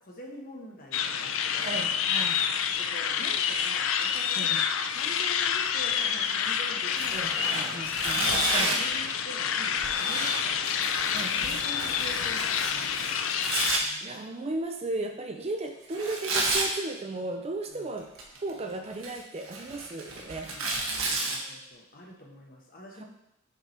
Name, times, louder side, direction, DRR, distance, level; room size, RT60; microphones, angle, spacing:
voice 1, 0.0-1.8 2.8-4.5 4.9-10.6 11.0-13.3 17.7-17.9 20.4-20.7 21.0-23.0, left 1 dB, 45° left, 0 dB, 1.3 m, -45 dB
sound 1, 0.9-13.8, left 7 dB, 65° left, 0.5 m, -28 dB
voice 2, 1.6-2.4 4.4-4.6 7.1-8.8 11.1-11.6 13.8-18.1 18.4-20.8 22.9-23.0, right 2 dB, 30° right, 4 dB, 0.5 m, -36 dB
Tearing, 6.9-8.9 9.8-13.8 15.9-16.7 18.0-18.5 18.9-21.4, right 2 dB, 75° right, 1.4 m, -32 dB
6.8 x 4.9 x 4.4 m, 0.82 s
head